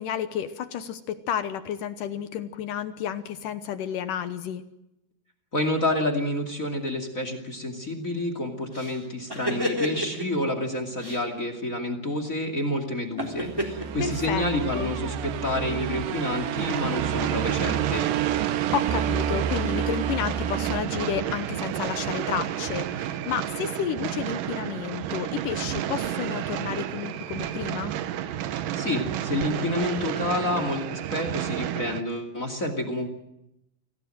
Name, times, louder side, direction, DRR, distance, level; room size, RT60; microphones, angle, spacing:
voice 1, 0.0-4.6 14.0-14.5 14.7-14.9 18.7-27.9, left 9 dB, 70° left, 11 dB, 2.1 m, -31 dB
voice 2, 5.5-18.1 28.5-33.1, left 1 dB, 25° left, 8 dB, 2.0 m, -29 dB
sound 1, 8.7-10.4 11.0-11.2 13.2-14.8, equal, 5° right, 3.1 m, -30 dB
sound 2, 13.4-21.7, right 9 dB, 90° right, 3.5 m, -30 dB
sound 3, 16.6-32.0, right 11 dB, 70° right, 2.2 m, -31 dB
26.0 x 17.0 x 7.7 m, 0.86 s
omnidirectional pair, 4.9 m